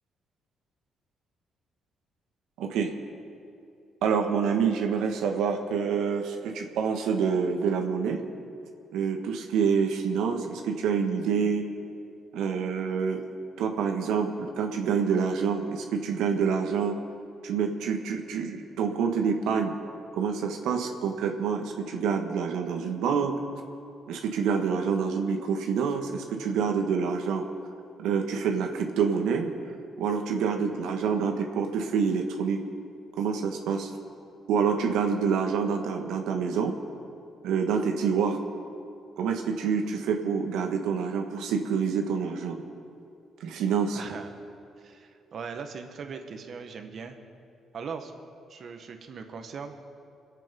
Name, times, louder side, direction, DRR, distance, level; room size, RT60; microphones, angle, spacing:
voice 1, 2.6-2.9 4.0-8.2 8.9-11.7 12.3-13.2 13.6-17.0 17.4-19.7 20.1-23.4 24.1-27.4 28.0-29.5 30.0-32.6 33.2-33.9 34.5-36.7 37.4-38.4 39.2-42.6 43.4-44.0, right 6 dB, 90° right, 3 dB, 1.5 m, -27 dB
voice 2, 43.9-44.3 44.8-47.2 47.7-48.1 48.5-49.7, right 5 dB, 55° right, 6 dB, 1.5 m, -39 dB
24.5 x 8.4 x 5.5 m, 2.6 s
cardioid pair, 90°, 0 cm